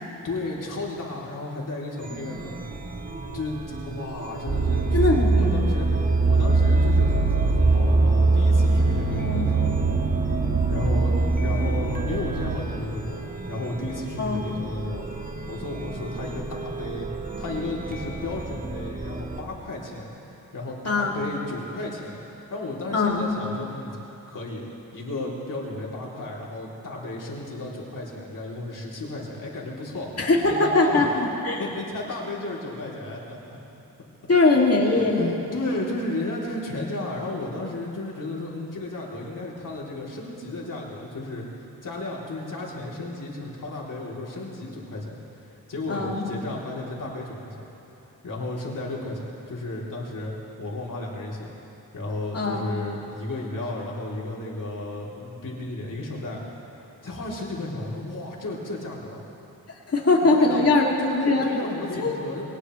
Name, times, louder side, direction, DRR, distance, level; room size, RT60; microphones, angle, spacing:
voice 1, 0.0-2.6 3.3-5.9 6.3-9.7 10.7-13.2 13.5-15.0 15.5-17.1 17.4-20.1 20.5-22.2 22.5-24.0 24.3-24.7 24.9-31.0 31.6-33.6 34.5-41.4 41.8-45.2 45.5-47.6 48.2-50.3 50.6-51.5 51.9-56.4 56.7-59.2 60.2-60.6 61.0-62.4, left 2 dB, 60° left, -4 dB, 3.4 m, -33 dB
Chime, 2.0-19.4, right 2 dB, 25° right, 1.3 m, -35 dB
sound 1, 4.5-12.6, right 3 dB, 50° right, 1.8 m, -21 dB
voice 2, 4.9-5.5 9.2-9.5 14.2-14.4 20.8-21.2 22.9-23.2 30.2-31.6 34.3-35.4 45.9-46.3 52.3-52.6 59.9-61.5 61.9-62.1, left 3 dB, 40° left, -2 dB, 2.7 m, -21 dB
21.5 x 19.5 x 3.3 m, 3.0 s
cardioid pair, 65°, 36 cm